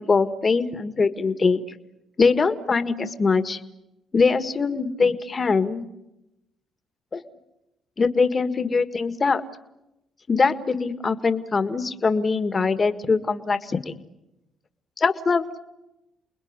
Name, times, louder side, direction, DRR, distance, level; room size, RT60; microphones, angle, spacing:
voice 1, 0.0-1.6 2.2-3.6 4.1-5.8 7.1-7.2 8.0-9.4 10.3-14.0 15.0-15.6, left 4 dB, 35° left, 10 dB, 1.7 m, -22 dB
30.0 x 20.5 x 9.7 m, 0.93 s
cardioid pair, 90°, 0 cm